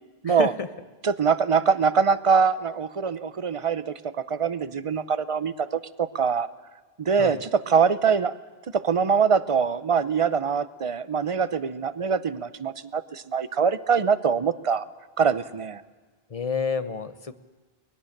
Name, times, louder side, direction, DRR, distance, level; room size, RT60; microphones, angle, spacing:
voice 1, 0.2-0.7 7.2-7.5 16.3-17.3, left 5 dB, 35° left, 12 dB, 1.0 m, -29 dB
voice 2, 1.0-3.9 4.3-6.5 7.0-8.4 8.7-14.9 15.2-15.8, right 6 dB, 35° right, 15 dB, 0.7 m, -23 dB
23.5 x 20.5 x 6.7 m, 1.3 s
omnidirectional pair, 1.1 m